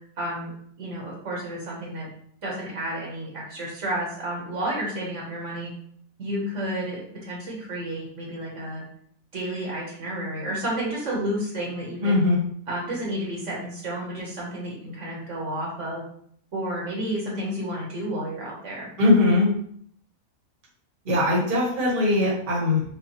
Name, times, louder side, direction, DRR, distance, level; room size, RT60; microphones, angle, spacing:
voice 1, 0.2-0.5 0.8-2.1 2.4-5.7 6.2-8.8 9.3-12.2 12.7-16.0 16.5-18.9, right 1 dB, 60° right, -4 dB, 1.4 m, -31 dB
voice 2, 12.0-12.4 19.0-19.5 21.0-23.0, left 2 dB, 40° right, -4 dB, 1.2 m, -21 dB
5.3 x 2.2 x 2.9 m, 0.62 s
omnidirectional pair, 1.5 m